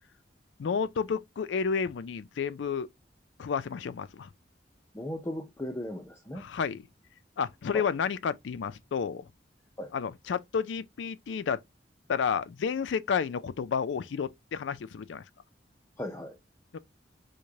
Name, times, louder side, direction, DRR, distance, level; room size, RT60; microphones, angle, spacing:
voice 1, 0.6-2.9 3.4-4.3 6.4-6.8 7.4-9.3 9.9-11.6 12.1-15.2 16.7-16.8, left 6 dB, 80° left, 0.4 m, -31 dB
voice 2, 4.9-6.4 7.7-7.8 9.8-9.9 16.0-16.4, left 1 dB, 15° left, 0.5 m, -36 dB
4.7 x 2.2 x 2.7 m
head